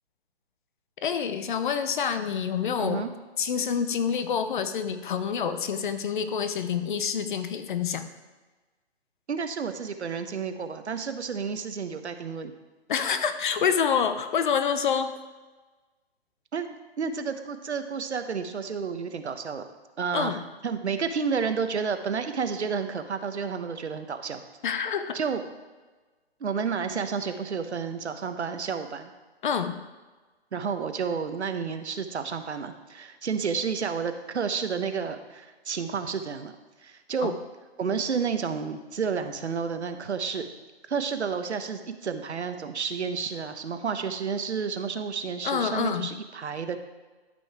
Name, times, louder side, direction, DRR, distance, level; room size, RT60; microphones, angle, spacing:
voice 1, 1.0-3.1 3.4-8.0 12.9-15.1 20.1-20.3 24.6-25.2 29.4-29.7 37.2-37.3 45.4-46.1, left 7 dB, 50° left, 10 dB, 0.8 m, -27 dB
voice 2, 2.8-3.1 9.3-12.5 16.5-16.7 17.0-19.6 20.0-24.4 25.1-25.4 26.4-29.1 30.5-36.5 36.8-37.3 37.8-40.5 40.9-46.8, right 6 dB, 85° right, 8 dB, 1.1 m, -31 dB
12.5 x 5.6 x 4.6 m, 1.3 s
hypercardioid pair, 150°, 33 cm